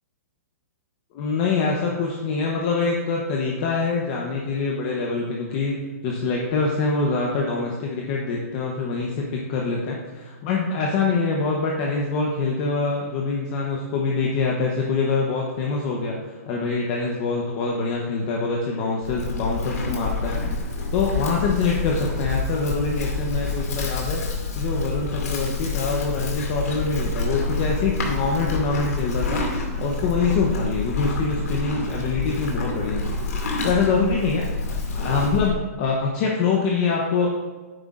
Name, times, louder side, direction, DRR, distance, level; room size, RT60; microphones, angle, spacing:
voice 1, 1.1-5.8 6.0-16.2 16.5-24.2 24.5-33.2 33.6-34.4 34.9-37.3, left 4 dB, 30° left, -1 dB, 0.9 m, -25 dB
Livestock farm animals working animals, 19.0-35.5, left 3 dB, 75° left, 2.3 m, -27 dB
10.0 x 9.2 x 2.5 m, 1.3 s
hypercardioid pair, 170°, 9 cm